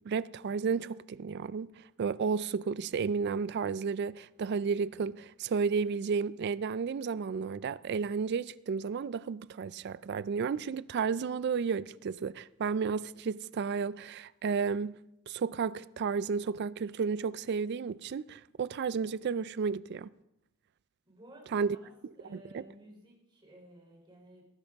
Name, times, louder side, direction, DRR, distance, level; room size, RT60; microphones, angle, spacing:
voice 1, 0.1-1.7 2.0-14.9 15.3-20.1 21.5-21.8 22.3-22.6, right 5 dB, 50° right, 0.3 m, -32 dB
voice 2, 21.1-24.4, right 1 dB, 20° right, 3.4 m, -55 dB
18.5 x 10.5 x 3.5 m
head